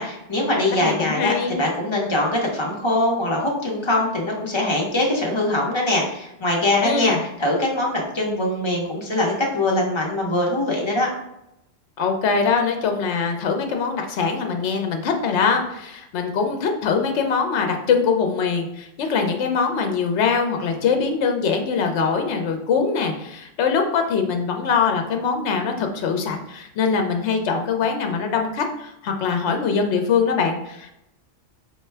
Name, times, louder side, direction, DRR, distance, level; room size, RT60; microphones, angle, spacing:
voice 1, 0.0-11.1, left 1 dB, 25° left, -2 dB, 0.7 m, -22 dB
voice 2, 0.8-1.6 6.8-7.2 12.0-30.9, left 5 dB, 70° left, 4 dB, 0.9 m, -22 dB
4.8 x 2.2 x 3.2 m, 0.84 s
omnidirectional pair, 1.3 m